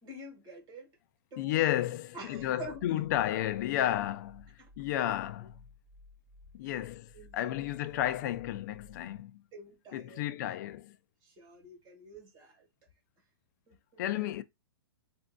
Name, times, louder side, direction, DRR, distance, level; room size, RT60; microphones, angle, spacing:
voice 1, 0.0-0.9 1.3-1.6 2.1-3.0 4.6-4.7 6.6-6.8 7.1-7.6 7.9-8.1 9.0-9.1 9.5-10.3 11.2-12.7 13.7-14.3, right 1 dB, 30° right, 1.9 m, -48 dB
voice 2, 1.4-4.5 4.8-5.6 6.5-9.4 9.9-11.0 14.0-14.4, left 13 dB, 45° left, 0.4 m, -32 dB
sound 1, 4.2-9.2, left 2 dB, 10° right, 0.6 m, -57 dB
3.5 x 2.6 x 2.2 m
hypercardioid pair, 145°, 13 cm